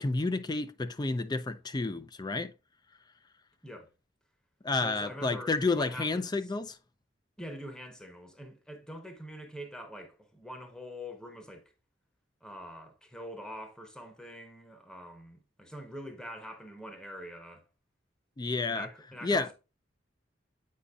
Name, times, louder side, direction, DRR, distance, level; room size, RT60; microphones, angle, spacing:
voice 1, 0.0-2.5 4.6-6.8 18.4-18.9 19.2-19.5, left 3 dB, 25° left, 0.4 m, -30 dB
voice 2, 4.8-6.5 7.4-11.7 12.4-17.6 18.7-19.5, equal, 5° left, 1.0 m, -44 dB
8.4 x 5.0 x 2.4 m
head